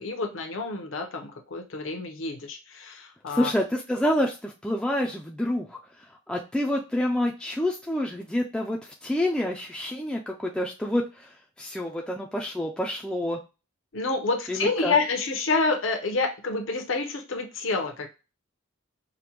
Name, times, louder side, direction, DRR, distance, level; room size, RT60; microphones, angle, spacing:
voice 1, 0.0-3.5 13.9-18.1, left 3 dB, 75° left, 4 dB, 0.8 m, -28 dB
voice 2, 3.3-5.8 6.3-11.3 11.6-13.4 14.5-14.9, left 1 dB, 5° left, -1 dB, 0.3 m, -28 dB
5.0 x 2.1 x 3.0 m, 0.30 s
head